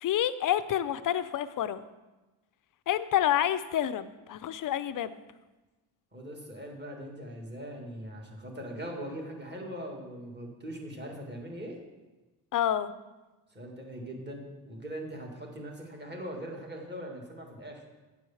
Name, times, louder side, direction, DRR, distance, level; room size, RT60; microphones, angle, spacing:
voice 1, 0.0-1.8 2.9-5.2 12.5-12.9, left 11 dB, 45° left, 14 dB, 0.5 m, -28 dB
voice 2, 6.1-11.8 13.5-17.8, equal, 20° right, 1 dB, 1.8 m, -41 dB
8.4 x 4.7 x 7.0 m, 1.1 s
cardioid pair, 120°, 46 cm